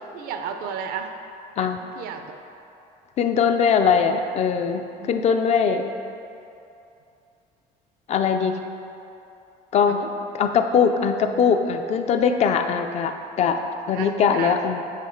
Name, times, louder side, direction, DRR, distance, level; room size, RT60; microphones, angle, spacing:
voice 1, 0.1-1.1 1.6-2.4 5.0-5.2 9.9-10.1 13.9-14.5, right 7 dB, 75° right, 6 dB, 0.5 m, -33 dB
voice 2, 3.2-5.9 8.1-8.6 9.7-10.0 10.3-13.6 13.9-14.8, left 6 dB, 45° left, 7 dB, 0.4 m, -21 dB
7.4 x 3.1 x 4.4 m, 2.7 s
cardioid pair, 125°, 16 cm